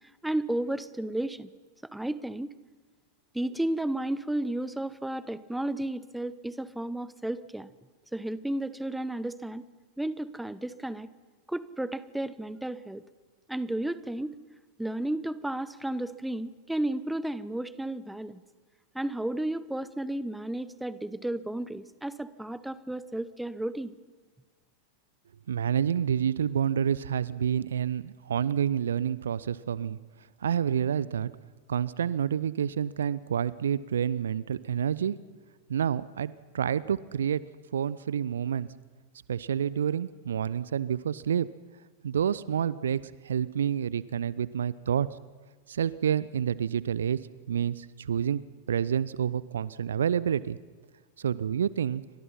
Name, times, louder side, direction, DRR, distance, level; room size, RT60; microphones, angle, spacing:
voice 1, 0.2-1.5 1.9-2.5 3.3-7.7 8.1-9.6 10.0-11.1 11.5-13.0 13.5-14.4 14.8-18.4 18.9-23.9, right 1 dB, 5° right, 16 dB, 1.0 m, -33 dB
voice 2, 25.5-30.0 30.4-31.3 31.7-35.1 35.7-37.4 37.7-38.7 39.3-41.5 42.0-45.1 45.7-47.2 47.5-48.4 48.7-50.6 51.2-52.0, right 8 dB, 65° right, 19 dB, 0.7 m, -28 dB
29.0 x 24.5 x 5.7 m, 1.4 s
figure-of-eight pair, 90°, 0 cm